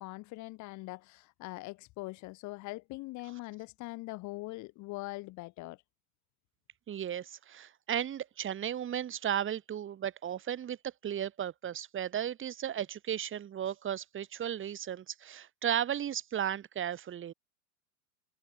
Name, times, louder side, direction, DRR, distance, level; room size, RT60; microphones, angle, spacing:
voice 1, 0.0-5.8, left 21 dB, 40° left, 3.1 m, -42 dB
voice 2, 6.9-17.3, right 10 dB, 25° right, 6.1 m, -35 dB
figure-of-eight pair, 95°, 46 cm